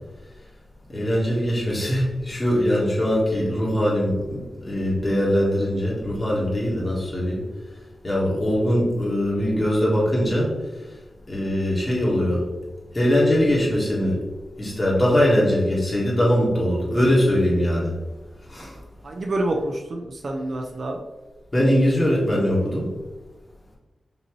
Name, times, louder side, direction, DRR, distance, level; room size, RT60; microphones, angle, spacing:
voice 1, 0.9-7.4 8.0-10.5 11.3-12.4 12.9-14.2 14.6-17.9 18.5-18.7 21.5-22.9, equal, 20° left, -5 dB, 1.3 m, -21 dB
voice 2, 19.0-21.0, right 1 dB, 45° right, 2 dB, 0.4 m, -27 dB
5.2 x 2.8 x 3.0 m, 1.1 s
wide cardioid pair, 180°, 0 cm